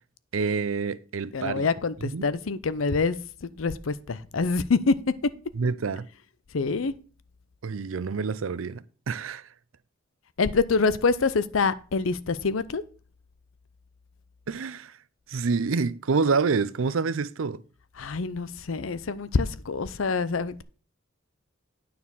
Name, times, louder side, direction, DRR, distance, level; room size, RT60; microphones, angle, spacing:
voice 1, 0.3-1.7 2.0-2.3 5.5-6.1 7.6-9.5 14.5-14.9 15.3-17.6, right 4 dB, 85° right, 0.5 m, -27 dB
voice 2, 1.3-4.9 6.5-6.9 10.4-12.8 18.0-20.6, left 4 dB, 85° left, 0.6 m, -26 dB
9.5 x 4.3 x 7.1 m
head